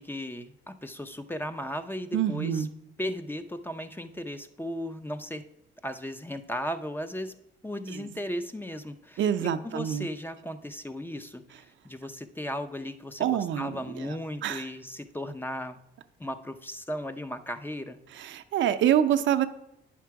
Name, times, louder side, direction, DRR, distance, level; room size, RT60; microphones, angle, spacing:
voice 1, 0.0-2.7 3.0-5.4 5.8-7.3 7.6-15.8 16.2-18.0, equal, 10° left, 9 dB, 0.6 m, -36 dB
voice 2, 2.1-2.7 7.9-8.0 9.2-10.1 13.2-14.1 14.4-14.6 18.2-19.5, right 10 dB, 70° right, 9 dB, 0.6 m, -26 dB
9.4 x 6.0 x 4.6 m, 0.78 s
cardioid pair, 90°, 20 cm